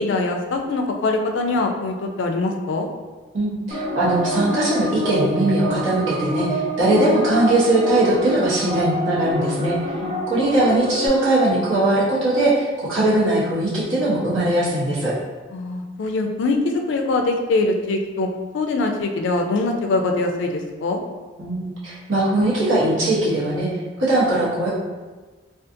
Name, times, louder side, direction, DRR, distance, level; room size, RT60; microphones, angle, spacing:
voice 1, 0.0-2.9 10.0-10.3 15.5-18.3 18.5-21.0, left 2 dB, 65° left, 3 dB, 0.3 m, -23 dB
voice 2, 3.3-9.7 10.3-15.1 21.4-23.7 24.0-24.7, right 1 dB, 85° right, -8 dB, 0.9 m, -20 dB
sound 1, 3.7-11.1, equal, 35° right, 0.8 m, -27 dB
2.5 x 2.3 x 2.5 m, 1.3 s
head